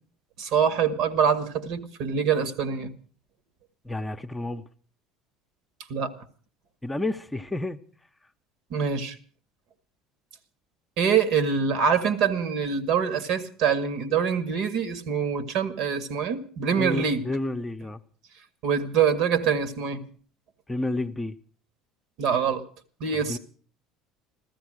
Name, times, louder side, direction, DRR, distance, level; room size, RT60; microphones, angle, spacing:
voice 1, 0.4-2.9 5.9-6.1 8.7-9.2 11.0-17.2 18.6-20.0 22.2-22.6 23.0-23.4, right 7 dB, 60° right, 2.0 m, -25 dB
voice 2, 3.8-4.6 6.8-7.8 16.8-18.0 20.7-21.3 23.1-23.4, left 2 dB, 10° left, 1.0 m, -30 dB
15.0 x 14.0 x 6.5 m
hypercardioid pair, 65°, 0 cm